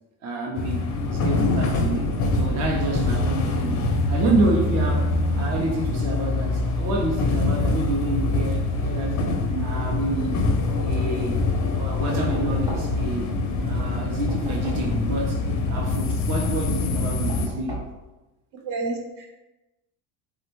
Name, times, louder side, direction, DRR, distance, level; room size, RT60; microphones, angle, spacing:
voice 1, 0.2-9.2 9.6-10.5 10.8-11.4 11.8-13.3 13.6-17.8, right 2 dB, 40° right, -1 dB, 0.5 m, -28 dB
sound 1, 0.6-17.5, left 2 dB, 45° left, 0.5 m, -24 dB
Knock, 12.3-13.2 14.3-15.0 17.3-18.0, equal, 10° right, 0.8 m, -33 dB
voice 2, 18.6-19.4, right 3 dB, 65° right, 1 dB, 0.9 m, -30 dB
3.3 x 2.1 x 3.0 m, 1.1 s
cardioid pair, 110°, 43 cm